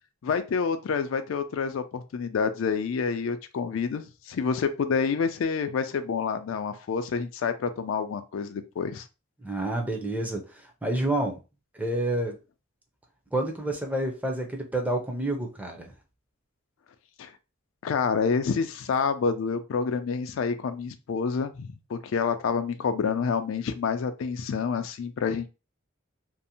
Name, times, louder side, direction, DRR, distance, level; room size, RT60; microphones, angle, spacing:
voice 1, 0.2-9.1 17.2-17.3 17.8-25.5, left 5 dB, 70° left, 0.3 m, -28 dB
voice 2, 9.4-11.4 11.7-12.4 13.3-15.9, right 1 dB, 5° right, 0.5 m, -29 dB
2.6 x 2.0 x 2.8 m
head